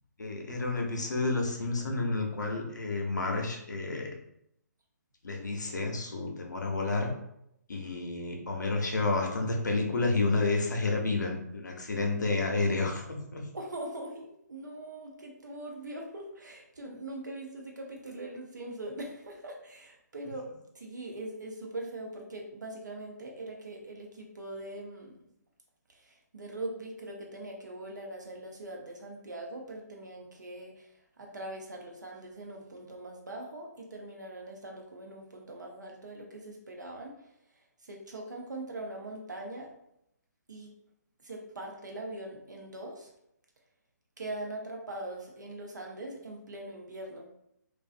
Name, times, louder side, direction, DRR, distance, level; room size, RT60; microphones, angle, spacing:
voice 1, 0.2-4.1 5.2-7.1 7.7-13.5, left 3 dB, 80° left, 1 dB, 0.6 m, -30 dB
voice 2, 13.5-25.1 25.9-37.1 37.8-39.7 40.5-40.7 41.2-43.1 44.2-47.3, right 1 dB, 80° right, 1 dB, 0.7 m, -42 dB
2.5 x 2.2 x 2.4 m, 0.78 s
figure-of-eight pair, 140°, 10 cm